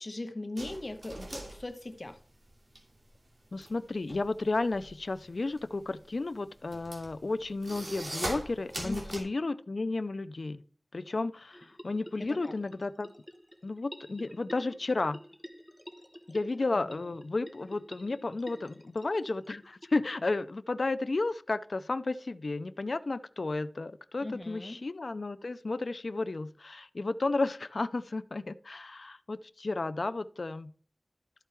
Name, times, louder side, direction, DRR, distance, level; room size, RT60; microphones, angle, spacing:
voice 1, 0.0-2.2 8.8-9.2 12.2-12.5 16.9-17.1 24.2-24.8, left 2 dB, 50° left, 7 dB, 1.1 m, -39 dB
sound 1, 0.6-2.8 3.1-9.2, right 1 dB, 80° right, 2.6 m, -41 dB
voice 2, 3.5-10.6 10.9-13.1 13.6-15.2 16.3-30.7, left 3 dB, 85° left, 13 dB, 0.4 m, -33 dB
sound 2, 11.5-20.3, equal, ahead, 1.1 m, -50 dB
13.0 x 4.6 x 4.4 m, 0.43 s
wide cardioid pair, 60°, 0 cm